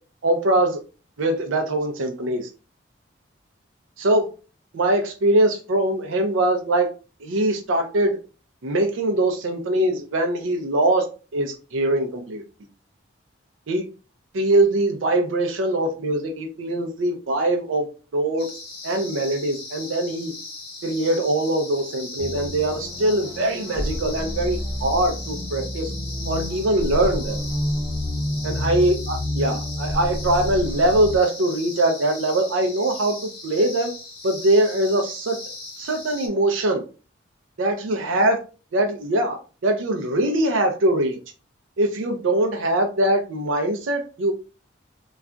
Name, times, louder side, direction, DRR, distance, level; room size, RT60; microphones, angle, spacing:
voice 1, 0.2-0.8 1.2-2.5 4.0-4.3 4.7-6.9 7.2-8.2 8.6-12.4 13.7-13.8 14.3-17.9 18.1-18.5 18.8-20.3 20.8-25.9 26.3-27.4 28.4-33.2 33.4-33.9 34.2-35.4 35.8-36.8 37.6-38.3 38.7-41.2 41.8-44.3, right 1 dB, 80° right, 4 dB, 0.5 m, -22 dB
sound 1, 18.4-36.3, left 2 dB, 50° left, 0.8 m, -38 dB
sound 2, 22.2-31.2, left 1 dB, 30° right, 0.6 m, -29 dB
2.3 x 2.2 x 3.7 m, 0.35 s
head